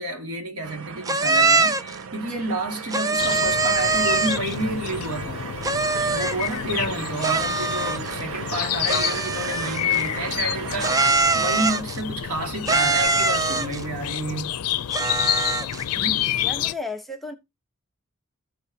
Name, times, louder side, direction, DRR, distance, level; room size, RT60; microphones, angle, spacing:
voice 1, 0.0-5.5 6.1-14.6 15.9-16.3, right 1 dB, 80° right, 2.1 m, -30 dB
sound 1, 0.6-11.1, right 6 dB, 65° right, 0.6 m, -36 dB
sound 2, 1.1-2.0 2.9-4.5 5.6-6.5 7.2-8.2 8.9-10.0 10.8-12.0 12.7-13.8 14.9-15.8, right 4 dB, 15° right, 0.4 m, -22 dB
sound 3, 3.2-16.7, left 11 dB, 85° left, 0.5 m, -29 dB
voice 2, 16.4-17.3, left 3 dB, ahead, 1.0 m, -33 dB
14.5 x 4.9 x 2.8 m
head